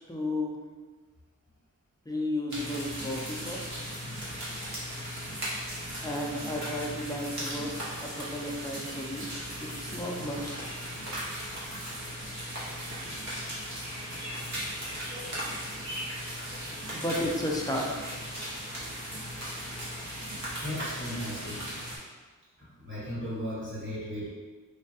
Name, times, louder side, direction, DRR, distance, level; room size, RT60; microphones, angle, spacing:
voice 1, 0.1-0.6 2.1-3.6 6.0-10.5 16.9-17.9, left 1 dB, 10° left, -2 dB, 0.4 m, -33 dB
sound 1, 2.5-22.0, equal, 55° right, 0.9 m, -37 dB
voice 2, 20.6-21.6 22.6-24.3, equal, 35° right, -8 dB, 1.1 m, -36 dB
3.1 x 2.2 x 2.7 m, 1.4 s
wide cardioid pair, 105°, 32 cm